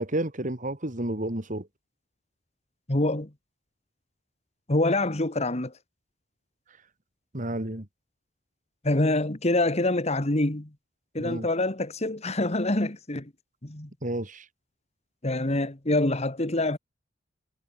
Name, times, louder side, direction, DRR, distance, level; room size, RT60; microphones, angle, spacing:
voice 1, 0.0-1.7 7.3-7.9 11.2-11.5 14.0-14.5, right 1 dB, 40° right, 2.7 m, -31 dB
voice 2, 2.9-3.3 4.7-5.7 8.8-10.7 11.1-13.3 13.6-13.9 15.2-16.8, left 2 dB, 35° left, 1.8 m, -25 dB
head